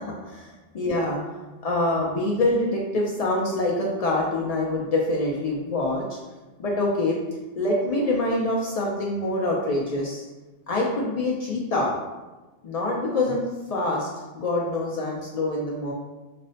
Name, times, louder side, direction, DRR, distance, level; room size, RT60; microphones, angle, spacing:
voice 1, 0.0-1.2 1.6-6.2 6.6-7.2 7.6-10.2 10.7-11.9 12.6-14.1 14.3-15.9, left 2 dB, 85° left, -3 dB, 0.3 m, -25 dB
5.2 x 2.0 x 2.6 m, 1.2 s
omnidirectional pair, 1.2 m